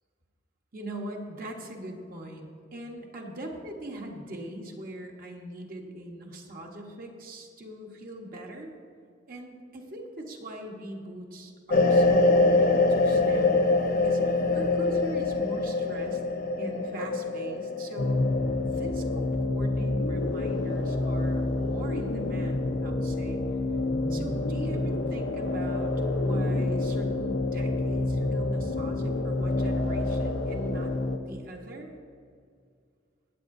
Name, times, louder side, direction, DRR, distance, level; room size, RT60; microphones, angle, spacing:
voice 1, 0.7-8.7 9.3-16.2 16.6-18.3 18.6-23.4 24.1-25.9 26.2-31.9, right 1 dB, 50° right, 1 dB, 1.3 m, -41 dB
sound 1, 11.7-19.3, left 3 dB, 50° left, 0.9 m, -24 dB
sound 2, 18.0-31.2, left 2 dB, 80° left, 0.7 m, -28 dB
16.0 x 8.9 x 2.7 m, 2.2 s
head